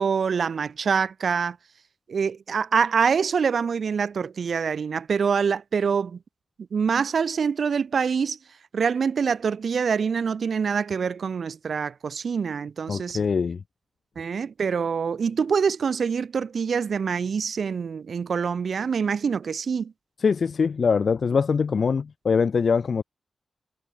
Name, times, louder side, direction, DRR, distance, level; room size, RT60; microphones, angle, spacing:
voice 1, 0.0-1.6 2.1-6.2 6.7-8.4 8.7-13.2 14.2-19.9, right 6 dB, 70° right, 3.6 m, -25 dB
voice 2, 12.9-13.6 20.2-23.0, left 5 dB, 60° left, 0.7 m, -23 dB
wide cardioid pair, 110°, 0 cm